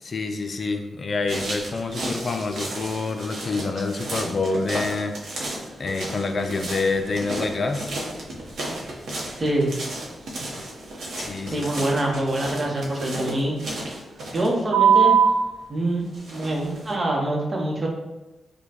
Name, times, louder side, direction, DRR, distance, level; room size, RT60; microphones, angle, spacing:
voice 1, 0.0-5.1 5.8-7.9 11.2-11.9, left 3 dB, 50° left, 6 dB, 0.3 m, -27 dB
sound 1, 1.3-15.5 16.1-16.9, right 5 dB, 75° right, 0.9 m, -28 dB
voice 2, 9.4-9.7 11.5-13.6 14.3-15.1 15.7-16.1 16.3-17.9, right 1 dB, 40° right, -1 dB, 0.9 m, -25 dB
5.0 x 2.3 x 2.8 m, 1.0 s
cardioid pair, 80°, 0 cm